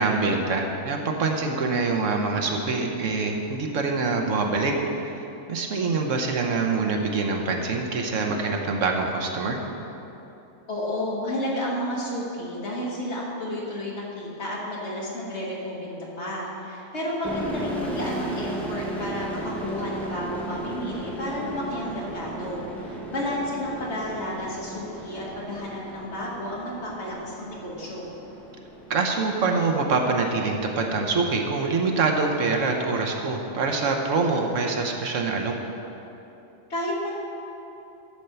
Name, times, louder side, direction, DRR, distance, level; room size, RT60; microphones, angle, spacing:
voice 1, 0.0-4.8 5.2-9.6 28.9-35.5, right 4 dB, 70° right, 2 dB, 1.2 m, -25 dB
voice 2, 10.7-28.1 36.7-37.1, left 1 dB, 55° left, -5 dB, 2.0 m, -31 dB
sound 1, 17.2-30.7, right 1 dB, ahead, 0.8 m, -36 dB
11.5 x 4.4 x 6.8 m, 3.0 s
omnidirectional pair, 1.4 m